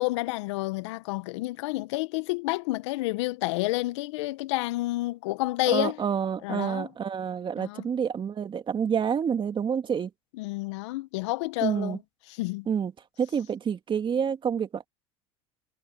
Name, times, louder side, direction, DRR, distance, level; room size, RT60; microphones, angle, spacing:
voice 1, 0.0-6.0 6.4-6.9 7.6-7.8 10.4-12.0 12.4-12.7, left 21 dB, 75° left, 1.3 m, -29 dB
voice 2, 5.7-10.1 11.6-12.0 12.7-12.9 13.2-14.9, right 7 dB, 30° right, 2.4 m, -28 dB
hypercardioid pair, 85°, 15 cm